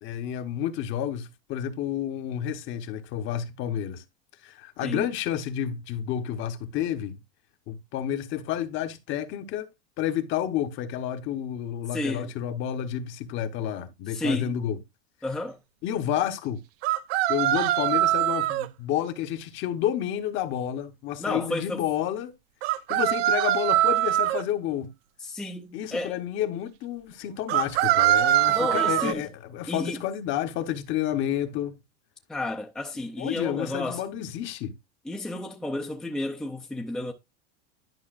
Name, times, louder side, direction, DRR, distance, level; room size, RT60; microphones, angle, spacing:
voice 1, 0.0-4.0 4.4-7.2 7.7-9.7 10.0-14.8 15.8-16.6 17.3-22.3 22.9-24.9 25.7-31.7 33.2-34.7, left 10 dB, 40° left, 1.0 m, -30 dB
voice 2, 11.9-12.3 14.1-14.5 15.2-15.6 21.2-21.8 25.2-26.2 28.5-29.2 29.7-30.0 32.3-34.0 35.0-37.1, left 1 dB, ahead, 0.5 m, -32 dB
sound 1, 16.8-18.7 22.6-24.4 27.5-29.1, right 14 dB, 75° right, 0.7 m, -23 dB
11.0 x 5.5 x 2.5 m
supercardioid pair, 155°, 31 cm